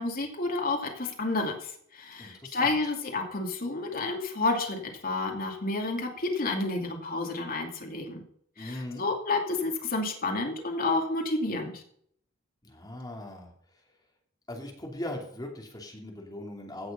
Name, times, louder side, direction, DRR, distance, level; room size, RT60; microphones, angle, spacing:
voice 1, 0.0-8.2 8.6-11.8, left 2 dB, 45° left, 2 dB, 2.5 m, -30 dB
voice 2, 2.2-2.8 8.6-9.1 12.6-13.5 14.5-16.9, left 1 dB, 20° left, 0 dB, 2.8 m, -39 dB
16.0 x 6.7 x 5.4 m, 0.64 s
head